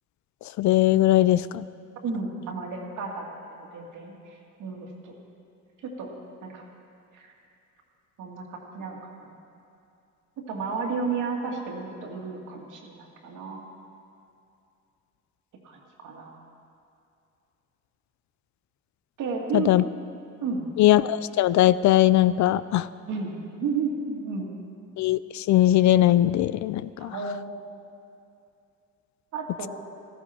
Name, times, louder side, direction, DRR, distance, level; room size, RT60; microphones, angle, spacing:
voice 1, 0.6-1.6 19.5-19.8 20.8-22.9 25.0-27.1, left 14 dB, 70° left, 17 dB, 0.5 m, -20 dB
voice 2, 2.0-5.1 5.8-6.1 6.4-6.6 7.1-7.3 8.2-9.4 10.5-13.6 15.6-16.4 19.2-19.7 20.4-20.7 23.1-24.5 27.0-27.5 29.3-29.7, right 4 dB, 80° right, 0 dB, 2.2 m, -33 dB
14.5 x 14.0 x 4.4 m, 2.6 s
cardioid pair, 90°, 30 cm